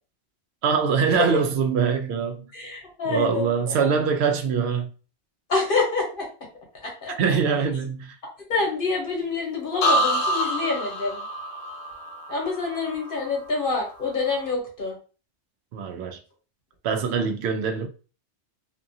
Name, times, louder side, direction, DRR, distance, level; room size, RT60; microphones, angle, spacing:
voice 1, 0.6-2.5 3.1-4.9 7.2-8.2 15.7-16.2 16.8-17.9, right 6 dB, 70° right, 0.8 m, -23 dB
voice 2, 2.5-4.0 5.5-6.3 6.8-7.4 8.5-11.2 12.3-15.0, left 3 dB, 50° left, 1.1 m, -27 dB
sound 1, 9.8-13.6 14.0-14.5, equal, 75° left, 0.8 m, -27 dB
2.7 x 2.4 x 2.6 m
omnidirectional pair, 1.2 m